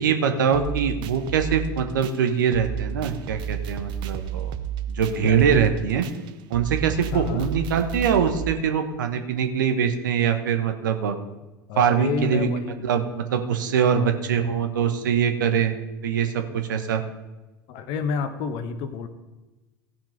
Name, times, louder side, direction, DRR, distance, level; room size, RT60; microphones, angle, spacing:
voice 1, 0.0-4.5 4.9-6.0 6.5-11.2 11.8-12.5 12.8-15.7 16.0-17.0, right 7 dB, 70° right, 7 dB, 1.1 m, -23 dB
sound 1, 0.5-8.5, right 9 dB, 45° right, 0.7 m, -32 dB
voice 2, 7.1-7.5 11.7-12.8 14.0-14.1 17.7-19.1, left 6 dB, 50° left, 10 dB, 1.1 m, -29 dB
16.5 x 6.0 x 5.0 m, 1.1 s
figure-of-eight pair, 75°, 11 cm